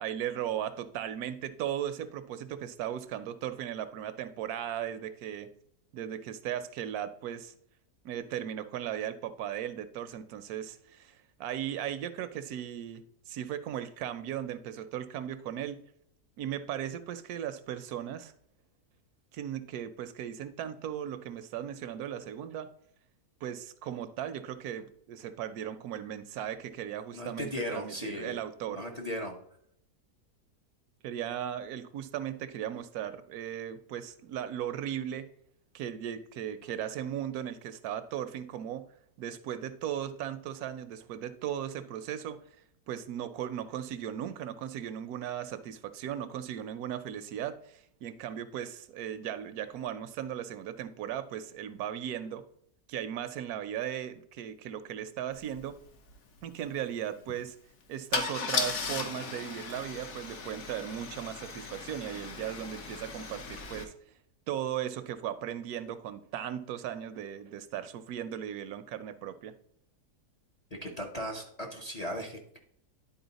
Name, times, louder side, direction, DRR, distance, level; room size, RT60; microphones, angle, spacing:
voice 1, 0.0-5.5 5.9-7.5 8.0-15.8 16.4-18.3 19.3-22.7 23.4-28.8 31.0-35.3 35.7-38.8 39.2-42.4 42.9-52.5 52.9-55.8 56.4-57.6 57.9-63.9 64.5-69.5, right 10 dB, 75° right, 12 dB, 1.0 m, -37 dB
voice 2, 27.1-28.4 28.7-29.4 70.8-72.6, equal, 35° left, 2 dB, 0.7 m, -37 dB
Car / Engine starting / Idling, 55.5-55.6 55.9-56.1 58.1-63.8, left 4 dB, 55° left, 1.1 m, -36 dB
10.5 x 4.2 x 4.0 m, 0.68 s
omnidirectional pair, 1.6 m